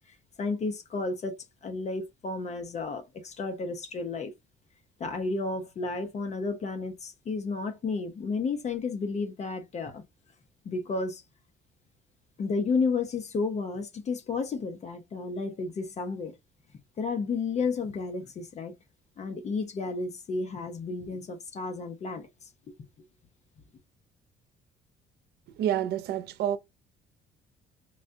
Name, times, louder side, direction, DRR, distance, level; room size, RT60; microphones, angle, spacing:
voice 1, 0.1-4.3 5.0-10.0 10.6-11.2 12.4-16.4 17.0-18.7 19.2-22.5, left 4 dB, 40° left, 0.7 m, -32 dB
voice 2, 25.6-26.6, right 11 dB, 75° right, 0.6 m, -28 dB
4.7 x 2.3 x 2.6 m
cardioid pair, 110°, 17 cm